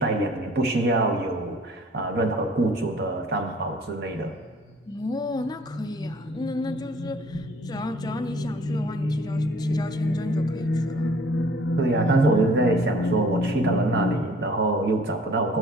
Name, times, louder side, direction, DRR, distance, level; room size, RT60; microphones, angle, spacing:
voice 1, 0.0-4.3 11.8-15.6, right 2 dB, 60° right, 0.7 m, -24 dB
sound 1, 4.4-14.2, left 1 dB, 80° left, 0.5 m, -28 dB
voice 2, 4.9-11.1, left 2 dB, 25° left, 0.3 m, -34 dB
14.0 x 6.1 x 2.3 m
head